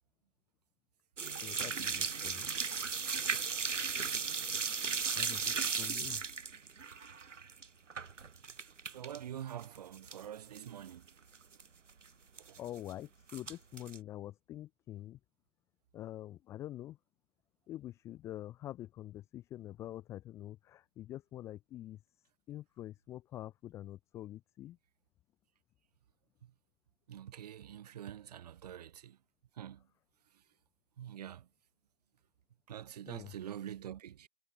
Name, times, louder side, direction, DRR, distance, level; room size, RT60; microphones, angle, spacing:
sound 1, 1.2-9.2 9.5-10.3 10.5-10.6 11.1-11.2 11.3-11.6 12.4-12.9 13.3-14.0, right 5 dB, 80° right, 2.7 m, -36 dB
voice 1, 1.4-2.5 5.2-6.2 12.6-15.2 15.9-17.0 17.7-22.0 22.5-24.8 33.1-33.3, left 13 dB, 10° left, 1.1 m, -46 dB
voice 2, 8.9-11.1 12.4-12.6 26.4-26.5 27.1-29.2 29.6-29.8 31.0-31.5 32.7-34.3, right 10 dB, 35° right, 1.9 m, -45 dB
hypercardioid pair, 160°, 36 cm